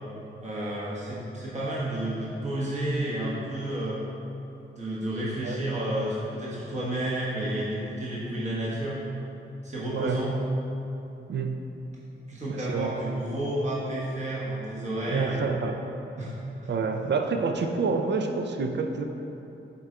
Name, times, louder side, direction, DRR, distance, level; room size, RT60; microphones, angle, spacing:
voice 1, 0.4-4.0 4.8-9.0 9.6-10.3 12.3-15.6 16.2-16.3, right 1 dB, 35° right, -7 dB, 1.2 m, -31 dB
voice 2, 12.5-12.9 15.1-15.8 16.7-19.0, right 4 dB, 60° right, 5 dB, 0.6 m, -28 dB
8.3 x 3.8 x 4.3 m, 3.0 s
cardioid pair, 85°, 21 cm